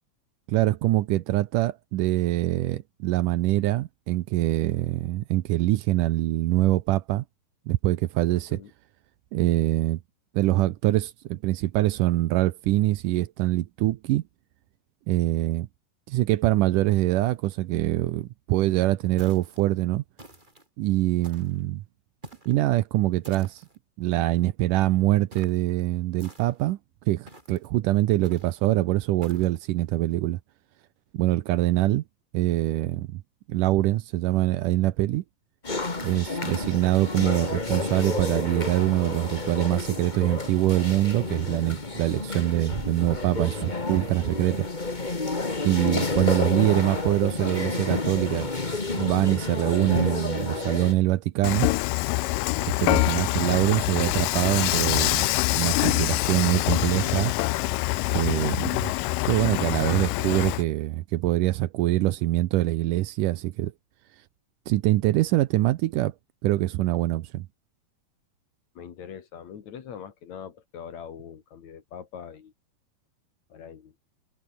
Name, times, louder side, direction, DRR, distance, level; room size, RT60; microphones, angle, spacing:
voice 1, 0.5-7.2 7.7-8.6 9.3-10.0 10.3-14.2 15.1-15.7 16.1-20.0 20.8-21.8 22.5-23.6 24.0-26.8 27.1-30.4 31.1-32.0 32.3-33.2 33.5-35.2 36.0-44.7 45.6-48.5 48.9-51.7 52.6-55.3 55.5-57.3 58.1-58.9 59.3-63.7 64.7-66.1 66.4-67.5, right 16 dB, 75° right, 2.2 m, -24 dB
sound 1, 19.2-19.6 20.2-20.7 21.2-21.6 22.2-22.6 23.2-23.8 25.3-25.6 26.2-26.7 27.3-27.7 28.2-28.6 29.2-29.6, right 1 dB, 10° right, 5.1 m, -48 dB
sound 2, 35.6-50.9, left 3 dB, 20° left, 1.1 m, -30 dB
Dishes pots and pans / Frying (food), 51.4-60.6, left 19 dB, 80° left, 2.2 m, -25 dB
voice 2, 68.7-72.5 73.5-73.9, left 7 dB, 55° left, 3.1 m, -42 dB
omnidirectional pair, 4.0 m